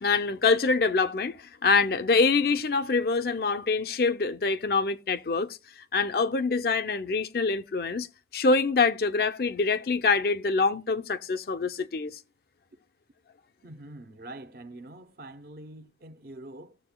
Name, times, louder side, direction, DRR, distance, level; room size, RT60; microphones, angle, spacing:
voice 1, 0.0-5.6 5.9-8.1 8.3-12.2, left 4 dB, 55° left, 0.5 m, -25 dB
voice 2, 13.6-16.8, right 1 dB, 55° right, 0.7 m, -45 dB
19.0 x 7.0 x 2.2 m
head